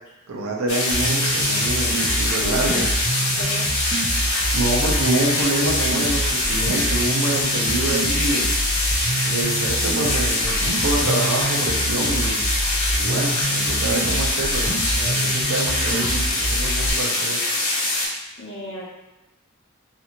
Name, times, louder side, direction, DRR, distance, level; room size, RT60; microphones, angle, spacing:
voice 1, 0.3-2.9 4.5-8.5 9.3-12.4 13.0-17.4, right 2 dB, 80° right, -1 dB, 0.6 m, -26 dB
sound 1, 0.7-18.1, left 2 dB, 90° left, 0.8 m, -23 dB
sound 2, 0.9-16.9, right 2 dB, 35° right, 0.4 m, -27 dB
voice 2, 2.3-2.8 3.3-3.7 18.4-18.9, equal, 55° left, -6 dB, 0.8 m, -34 dB
2.9 x 2.5 x 2.5 m, 0.98 s
head